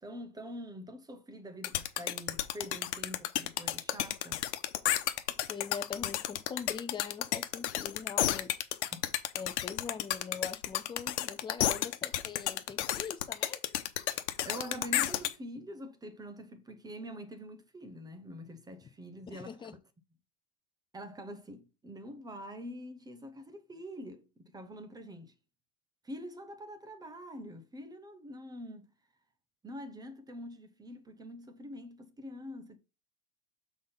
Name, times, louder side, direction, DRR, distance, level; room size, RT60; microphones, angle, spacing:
voice 1, 0.0-4.4 8.9-9.1 14.1-19.6 20.9-25.3 26.0-28.9 29.6-32.8, equal, 10° right, 0.9 m, -45 dB
sound 1, 1.6-15.3, left 13 dB, 85° left, 1.0 m, -31 dB
voice 2, 5.5-8.5 9.3-13.6 19.3-19.7, left 6 dB, 15° left, 0.6 m, -42 dB
6.2 x 4.0 x 5.5 m
supercardioid pair, 135°, 33 cm